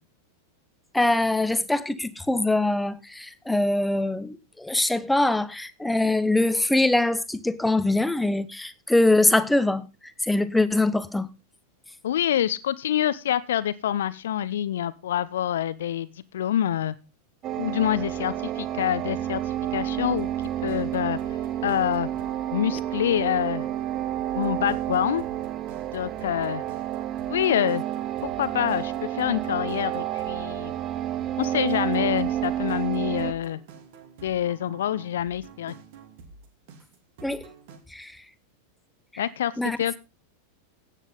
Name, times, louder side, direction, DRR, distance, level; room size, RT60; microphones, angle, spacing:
voice 1, 0.9-9.8 10.2-11.3 37.2-37.4 37.9-38.1 39.6-39.8, left 2 dB, 5° left, 1.0 m, -23 dB
voice 2, 12.0-16.1 16.3-17.0 17.6-19.4 19.7-20.3 20.6-21.2 21.6-22.1 22.5-23.7 24.3-25.2 25.9-26.6 27.3-27.8 28.2-30.7 31.4-33.6 34.2-35.7 39.2-39.5 39.8-40.0, left 11 dB, 60° left, 0.8 m, -26 dB
sound 1, 17.4-33.3, right 12 dB, 30° right, 1.1 m, -30 dB
sound 2, 19.0-37.8, right 5 dB, 50° right, 2.7 m, -48 dB
16.0 x 9.2 x 3.8 m
figure-of-eight pair, 90°, 0 cm